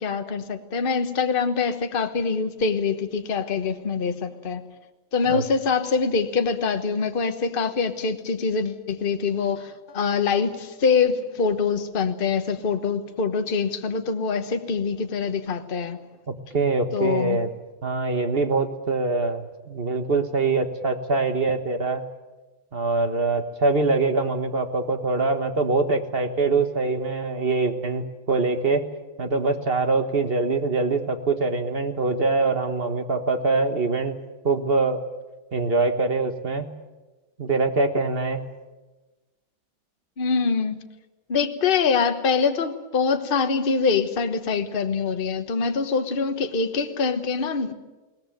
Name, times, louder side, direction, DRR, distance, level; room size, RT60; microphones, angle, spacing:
voice 1, 0.0-4.6 5.1-16.0 16.9-17.4 40.2-40.8 41.3-47.7, left 5 dB, 35° left, 7 dB, 1.2 m, -24 dB
voice 2, 16.3-17.5 17.8-22.1 22.7-28.8 29.2-34.2 34.4-35.0 35.5-36.7 37.4-38.5, right 3 dB, 35° right, 8 dB, 1.4 m, -24 dB
21.5 x 18.5 x 9.1 m, 1.2 s
omnidirectional pair, 2.0 m